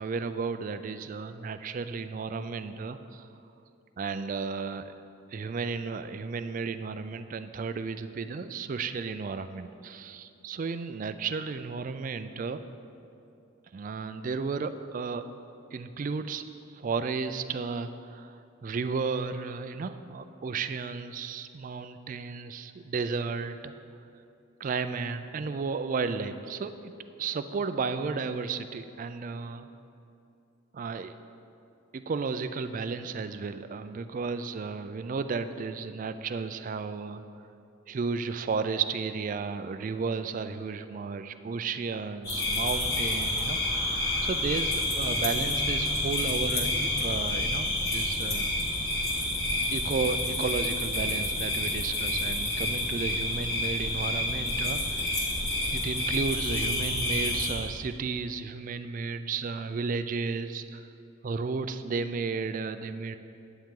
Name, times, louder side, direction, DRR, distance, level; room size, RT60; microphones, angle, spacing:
voice 1, 0.0-3.3 4.0-4.9 5.3-12.6 13.7-15.3 15.7-16.4 16.7-23.7 24.6-26.9 27.2-29.7 30.7-31.1 31.9-37.2 37.9-43.6 44.2-48.5 49.7-55.1 55.7-60.9 61.2-63.2, right 4 dB, 40° right, 11 dB, 0.3 m, -33 dB
sound 1, 42.2-57.5, left 1 dB, 55° left, 2.0 m, -29 dB
10.0 x 8.9 x 3.7 m, 2.6 s
head